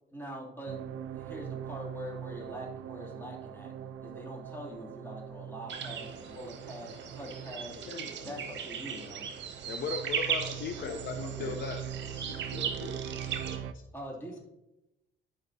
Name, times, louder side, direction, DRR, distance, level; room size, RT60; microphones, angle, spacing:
voice 1, 0.1-0.8 1.1-3.7 4.0-7.8 8.2-9.3 13.9-14.4, equal, 10° left, -3 dB, 2.6 m, -43 dB
sound 1, 0.7-13.7, right 9 dB, 85° right, 0.4 m, -42 dB
sound 2, 5.7-13.6, right 7 dB, 65° right, 1.0 m, -38 dB
voice 2, 7.9-8.4 10.8-11.6 12.5-13.2 13.4-13.8, left 3 dB, 80° left, 3 dB, 1.0 m, -45 dB
voice 3, 9.6-11.8, left 5 dB, 55° left, 6 dB, 0.6 m, -36 dB
11.0 x 5.0 x 2.7 m, 0.93 s
cardioid pair, 90°, 20 cm